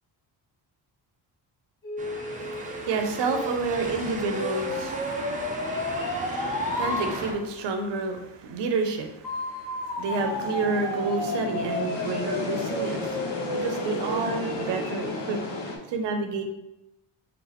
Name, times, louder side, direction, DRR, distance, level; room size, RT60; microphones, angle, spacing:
sound 1, 1.8-7.1 9.2-15.1, left 1 dB, 50° left, 1.1 m, -32 dB
sound 2, 2.0-7.3, right 2 dB, 20° right, 0.4 m, -36 dB
voice 1, 2.3-13.4 13.6-15.4 15.9-16.4, right 3 dB, 75° right, 5 dB, 0.7 m, -30 dB
sound 3, 10.1-15.8, left 2 dB, 80° left, 1.0 m, -34 dB
3.9 x 3.6 x 2.9 m, 0.89 s
cardioid pair, 170°, 43 cm